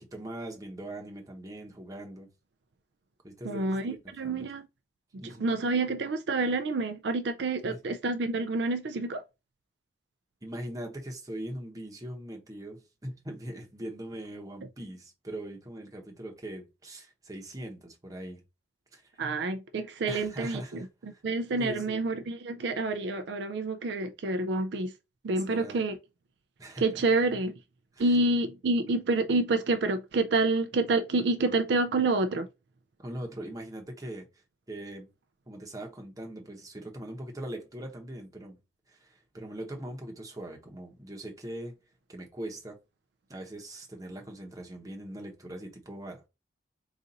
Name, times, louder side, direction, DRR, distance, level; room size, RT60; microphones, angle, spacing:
voice 1, 0.0-2.3 3.2-4.5 5.2-5.5 7.7-7.8 10.4-18.4 18.9-19.3 20.1-21.2 21.6-22.0 25.3-25.8 26.6-27.0 27.9-28.1 33.0-35.1 35.5-38.6 38.9-41.7 42.1-42.8 43.3-46.3, right 1 dB, 20° right, 0.9 m, -41 dB
voice 2, 3.4-4.6 5.2-9.2 19.2-20.8 21.2-24.9 25.2-25.9 26.8-27.5 28.0-32.5, right 3 dB, 60° right, 0.4 m, -28 dB
4.0 x 2.5 x 3.8 m
head